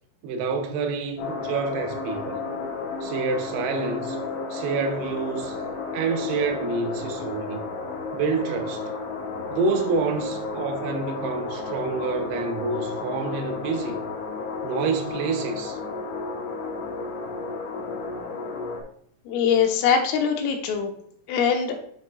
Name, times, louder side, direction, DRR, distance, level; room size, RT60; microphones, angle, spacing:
voice 1, 0.2-2.4 3.0-4.2 4.5-5.6 5.9-7.6 8.1-8.9 9.5-14.0 14.6-15.8, right 4 dB, 80° right, 2.4 m, -28 dB
sound 1, 1.2-18.8, left 4 dB, 70° left, 3.6 m, -32 dB
voice 2, 19.3-20.9 21.3-21.8, left 7 dB, 85° left, 3.6 m, -22 dB
8.8 x 6.5 x 2.4 m
omnidirectional pair, 5.7 m